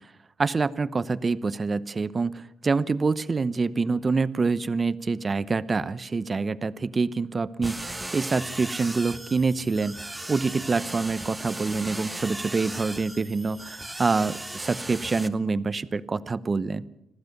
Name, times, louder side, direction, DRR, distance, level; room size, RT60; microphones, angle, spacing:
voice 1, 0.4-10.0 10.3-16.9, right 4 dB, 30° right, 15 dB, 0.9 m, -26 dB
sound 1, 7.6-15.3, right 1 dB, 10° right, 1.5 m, -37 dB
26.0 x 15.5 x 6.7 m, 0.87 s
cardioid pair, 90°, 0 cm